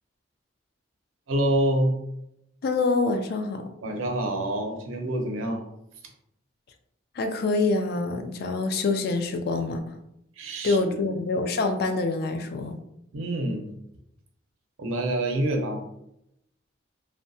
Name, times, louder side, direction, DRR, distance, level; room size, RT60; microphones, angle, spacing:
voice 1, 1.3-2.0 3.8-5.6 10.4-11.1 13.1-13.7 14.8-15.8, right 1 dB, 85° right, 3 dB, 0.6 m, -26 dB
voice 2, 2.6-3.7 7.2-10.0 10.6-12.8, left 3 dB, 50° left, 6 dB, 0.3 m, -26 dB
2.7 x 2.2 x 2.6 m, 0.80 s
head